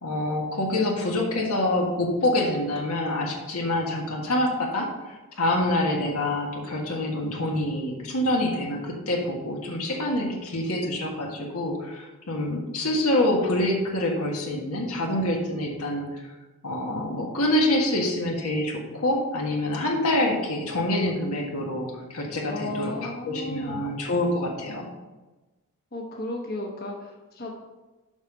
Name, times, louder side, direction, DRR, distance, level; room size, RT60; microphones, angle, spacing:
voice 1, 0.0-16.2 16.6-24.9, left 1 dB, 85° left, 0 dB, 1.7 m, -26 dB
voice 2, 22.5-23.9 25.9-27.5, left 2 dB, 45° left, 0 dB, 1.0 m, -34 dB
7.2 x 5.9 x 5.3 m, 1.2 s
head